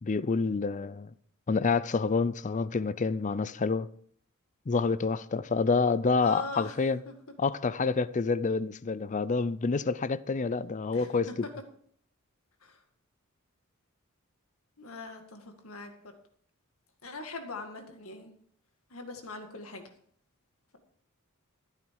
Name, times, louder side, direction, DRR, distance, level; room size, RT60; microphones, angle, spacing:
voice 1, 0.0-1.1 1.5-3.9 4.7-7.0 7.4-11.3, left 4 dB, 35° left, 0.4 m, -28 dB
voice 2, 6.2-7.1 10.9-11.3 12.6-12.8 14.8-16.1 17.0-18.3 18.9-19.9, left 2 dB, 75° left, 2.1 m, -42 dB
14.5 x 9.0 x 4.7 m
head